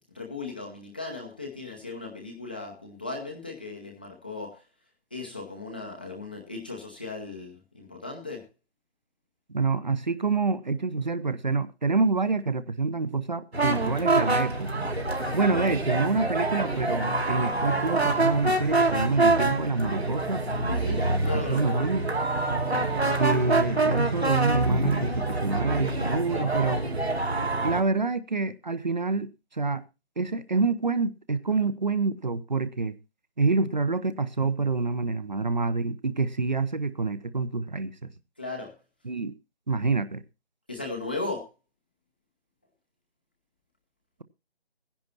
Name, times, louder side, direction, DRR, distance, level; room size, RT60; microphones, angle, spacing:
voice 1, 0.1-4.6 5.1-8.4 20.7-21.8 38.4-38.7 40.7-41.5, left 3 dB, 10° left, 0.8 m, -37 dB
voice 2, 9.5-14.9 15.3-20.5 21.3-22.0 23.2-26.8 27.6-29.8 30.2-33.0 33.4-38.1 39.0-39.3 39.7-40.2, right 4 dB, 45° right, 1.0 m, -27 dB
sound 1, 13.5-27.8, right 2 dB, 75° right, 2.8 m, -26 dB
16.0 x 10.5 x 4.2 m
figure-of-eight pair, 155°, 32 cm